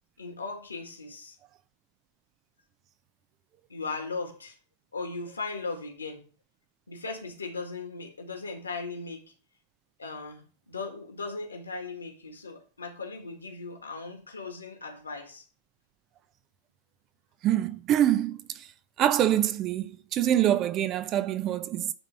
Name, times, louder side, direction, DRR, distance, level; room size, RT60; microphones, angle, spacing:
voice 1, 0.2-1.4 3.7-4.6 4.9-6.2 6.9-9.3 10.0-15.4, left 4 dB, 75° left, 1.8 m, -38 dB
voice 2, 17.4-18.7 19.0-21.9, right 11 dB, 35° right, 0.6 m, -25 dB
9.8 x 4.0 x 5.4 m
figure-of-eight pair, 90°, 0 cm